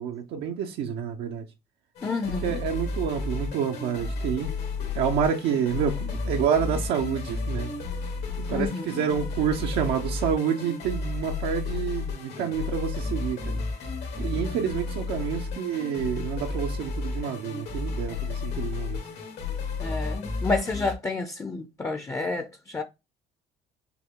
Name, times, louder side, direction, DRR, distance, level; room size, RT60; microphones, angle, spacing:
voice 1, 0.0-1.4 2.4-4.5 4.9-7.7 8.5-13.6 14.2-19.0, right 8 dB, 85° right, 0.7 m, -28 dB
sound 1, 2.0-20.9, left 4 dB, 80° left, 1.9 m, -32 dB
voice 2, 2.0-2.6 8.5-9.0 19.8-22.8, left 3 dB, 15° left, 0.5 m, -30 dB
5.9 x 2.2 x 3.6 m
cardioid pair, 110°, 17 cm